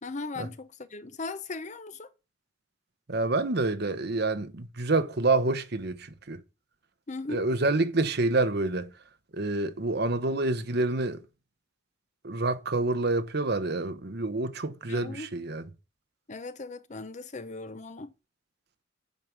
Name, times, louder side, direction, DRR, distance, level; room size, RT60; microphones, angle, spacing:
voice 1, 0.0-2.1 7.1-7.5 14.9-15.3 16.3-18.1, left 3 dB, 40° left, 0.8 m, -38 dB
voice 2, 3.1-6.4 7.3-8.9 9.3-11.2 12.2-15.6, right 2 dB, 55° right, 1.0 m, -27 dB
9.1 x 5.3 x 6.0 m
head